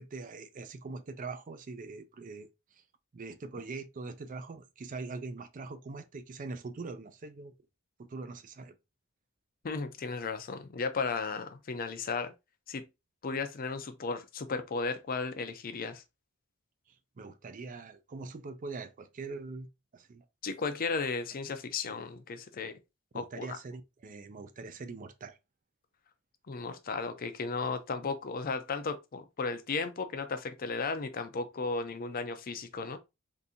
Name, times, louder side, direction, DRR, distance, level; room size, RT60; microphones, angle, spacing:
voice 1, 0.0-2.8 3.1-7.5 8.0-8.7 16.9-19.7 19.9-20.3 21.9-22.0 23.1-25.4, right 3 dB, 40° right, 0.4 m, -43 dB
voice 2, 9.6-12.3 12.7-12.9 13.2-16.0 20.4-22.7 23.1-23.6 26.5-33.0, left 4 dB, 40° left, 0.5 m, -35 dB
3.7 x 2.6 x 2.7 m
head